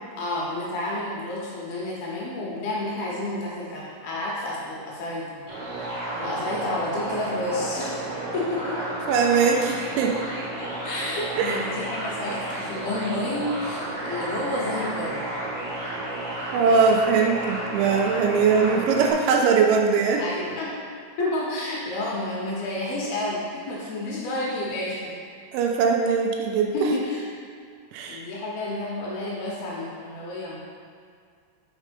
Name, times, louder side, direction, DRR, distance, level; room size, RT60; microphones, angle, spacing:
voice 1, 0.2-5.4 5.7-8.0 8.3-8.8 10.6-15.3 20.2-20.7 21.2-25.2 26.7-27.2 28.1-30.6, left 1 dB, 70° left, -5 dB, 2.7 m, -30 dB
sound 1, 5.5-19.1, right 1 dB, 65° right, 3.0 m, -32 dB
voice 2, 9.1-10.2 11.4-11.6 16.5-20.2 25.5-26.7 27.9-28.2, right 5 dB, 90° right, 1 dB, 3.0 m, -21 dB
6.2 x 5.4 x 5.2 m, 2.3 s
omnidirectional pair, 5.3 m